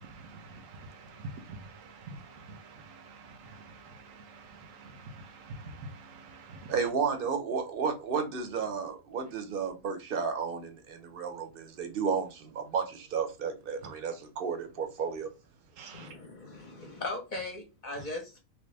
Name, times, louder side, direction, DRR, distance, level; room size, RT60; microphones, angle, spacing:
voice 1, 0.0-6.7 15.8-16.1, right 2 dB, 75° right, 1.1 m, -47 dB
voice 2, 6.7-15.3, right 6 dB, 50° right, 0.8 m, -32 dB
voice 3, 15.9-18.4, left 2 dB, 40° left, 0.9 m, -39 dB
3.0 x 2.9 x 3.3 m
omnidirectional pair, 1.4 m